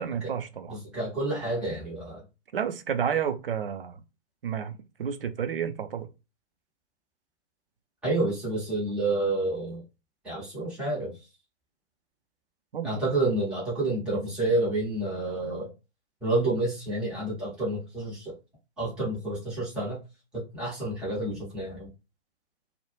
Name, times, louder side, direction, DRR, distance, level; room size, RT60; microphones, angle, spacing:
voice 1, 0.0-0.8 2.5-4.0 4.4-4.7 5.0-6.1 12.7-12.9, right 8 dB, 55° right, 0.5 m, -30 dB
voice 2, 0.7-2.2 8.0-9.8 10.2-11.2 12.8-15.7 16.2-18.3 18.8-20.0 20.3-21.9, right 2 dB, 5° right, 0.5 m, -29 dB
2.2 x 2.0 x 3.1 m
figure-of-eight pair, 125°, 34 cm